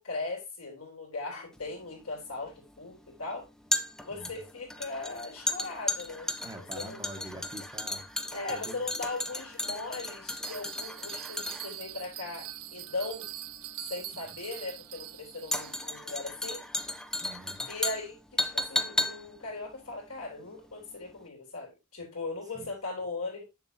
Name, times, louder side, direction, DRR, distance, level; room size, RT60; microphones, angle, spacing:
voice 1, 0.0-3.5 4.0-6.3 6.7-7.0 8.3-13.3 13.9-16.7 17.6-23.4, left 3 dB, 75° left, 3.5 m, -38 dB
sound 1, 1.6-20.8 21.1-21.2, left 1 dB, 5° left, 0.4 m, -35 dB
voice 2, 6.4-8.1 8.5-8.9 14.3-14.4 17.2-17.7 22.5-22.7, right 1 dB, 15° right, 1.0 m, -45 dB
Bell, 10.4-16.0, right 13 dB, 85° right, 0.7 m, -43 dB
7.2 x 6.9 x 2.7 m
head